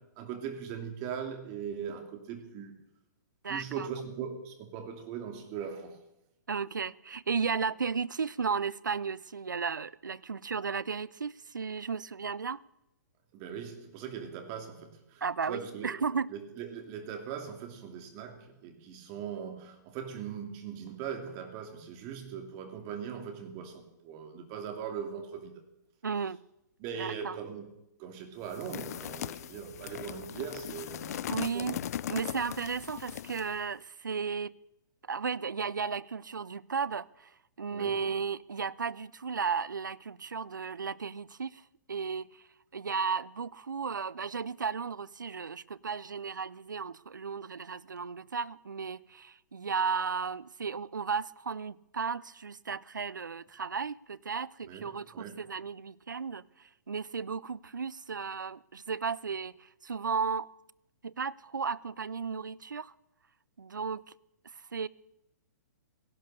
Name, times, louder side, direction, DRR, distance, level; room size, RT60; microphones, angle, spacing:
voice 1, 0.1-2.7 3.5-6.0 13.3-16.0 16.3-25.6 26.8-27.7 28.0-31.8 37.7-38.0 54.6-55.5, right 7 dB, 35° right, 2.6 m, -40 dB
voice 2, 3.4-3.9 6.5-12.6 15.2-16.3 26.0-26.4 26.9-27.4 31.3-31.8 32.1-34.5 35.1-37.3 37.6-41.6 41.9-42.4 42.7-60.5 61.0-62.9 63.6-64.0 64.7-64.9, right 5 dB, 90° right, 0.5 m, -34 dB
sound 1, 28.5-33.6, left 11 dB, 55° left, 0.5 m, -39 dB
16.5 x 11.5 x 6.7 m
hypercardioid pair, 120°, 10 cm